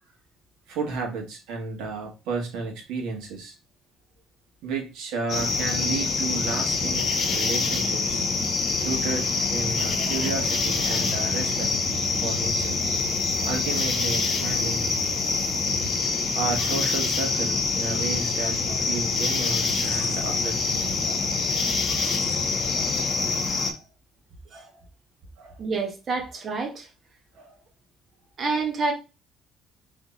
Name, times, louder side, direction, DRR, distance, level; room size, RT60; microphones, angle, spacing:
voice 1, 0.7-3.5 4.6-8.2 8.8-11.7 12.2-12.8 13.4-15.0 16.3-21.2 21.9-22.1 22.7-23.0 23.6-23.8 24.5-24.8 25.4-25.6 27.3-27.6, right 4 dB, 90° right, 1 dB, 1.7 m, -33 dB
sound 1, 5.3-23.7, left 4 dB, 45° left, 1.2 m, -25 dB
voice 2, 25.6-26.9 28.4-28.9, right 4 dB, 35° right, 2 dB, 1.2 m, -28 dB
3.6 x 3.4 x 4.0 m, 0.29 s
cardioid pair, 135°, 0 cm